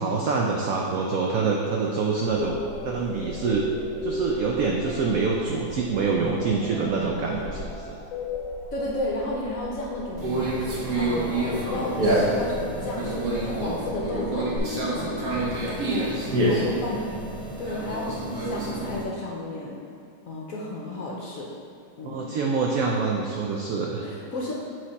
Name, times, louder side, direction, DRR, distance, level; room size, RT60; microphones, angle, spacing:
voice 1, 0.0-3.7 4.0-8.0 16.2-16.6 22.0-24.1, right 4 dB, 80° right, -1 dB, 0.7 m, -26 dB
sound 1, 2.3-14.6, left 2 dB, 90° left, 1.3 m, -36 dB
voice 2, 8.7-14.5 15.0-15.3 15.6-17.0 17.6-19.8 20.3-21.5 22.0-22.3 24.0-24.5, left 1 dB, 65° left, -3 dB, 0.9 m, -33 dB
Conversation, 10.2-19.0, right 1 dB, 55° right, 1.4 m, -27 dB
7.5 x 3.2 x 4.0 m, 2.3 s
omnidirectional pair, 2.0 m